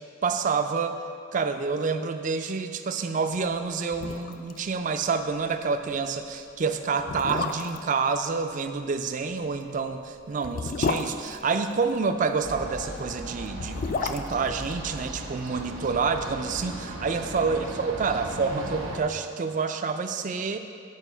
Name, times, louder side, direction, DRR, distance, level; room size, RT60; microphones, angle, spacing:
voice 1, 0.2-1.0 1.3-20.6, right 5 dB, 40° right, 8 dB, 0.3 m, -28 dB
sound 1, 3.6-3.7 3.9-4.6 4.9-5.0 5.4-5.5 6.2-6.3 7.0-7.9 9.4-12.1 13.4-15.6 15.9-16.0, left 4 dB, 40° left, 0.3 m, -32 dB
sound 2, 12.4-19.0, right 1 dB, 80° right, 1.0 m, -37 dB
8.1 x 4.6 x 5.5 m, 2.4 s
head